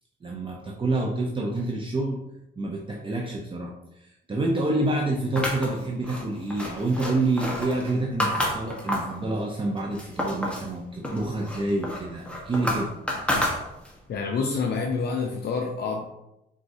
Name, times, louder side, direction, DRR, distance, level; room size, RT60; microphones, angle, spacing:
voice 1, 0.2-2.2 2.6-3.7 4.0-12.9, right 2 dB, 25° right, -1 dB, 0.6 m, -28 dB
sound 1, 5.4-9.2 9.6-10.7 11.0-14.1, left 1 dB, 5° left, 1.1 m, -30 dB
voice 2, 14.1-16.1, left 4 dB, 55° left, 1 dB, 0.6 m, -27 dB
4.6 x 3.8 x 2.7 m, 0.88 s
cardioid pair, 90°, 20 cm